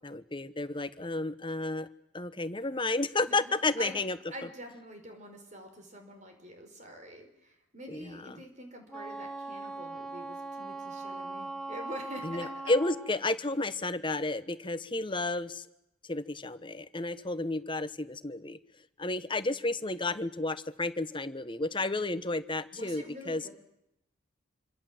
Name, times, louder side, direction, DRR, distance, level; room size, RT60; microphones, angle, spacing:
voice 1, 0.0-1.9 2.1-4.2 7.9-8.4 12.2-15.7 16.1-18.6 19.0-23.4, left 2 dB, 25° left, 12 dB, 1.1 m, -32 dB
voice 2, 3.2-3.9 4.3-12.7 22.7-23.5, equal, 35° right, 5 dB, 5.1 m, -46 dB
Wind instrument woodwind instrument, 8.9-13.2, right 2 dB, 5° left, 1.5 m, -40 dB
27.0 x 26.0 x 7.8 m, 0.84 s
head